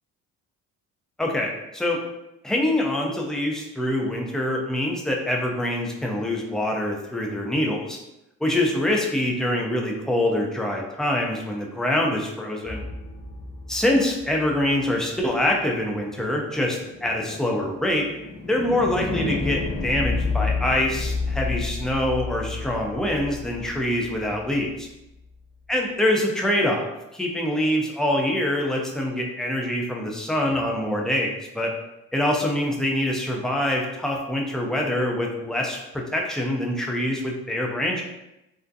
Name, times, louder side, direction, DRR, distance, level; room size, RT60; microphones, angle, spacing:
voice 1, 1.2-2.0 2.4-8.0 8.4-12.9 13.7-18.1 18.5-24.9 25.7-31.7 32.1-38.0, left 1 dB, ahead, -1 dB, 0.5 m, -25 dB
sound 1, 12.6-14.8 16.6-24.7, left 3 dB, 20° left, 0.9 m, -31 dB
2.5 x 2.1 x 2.6 m, 0.91 s
supercardioid pair, 60°, 36 cm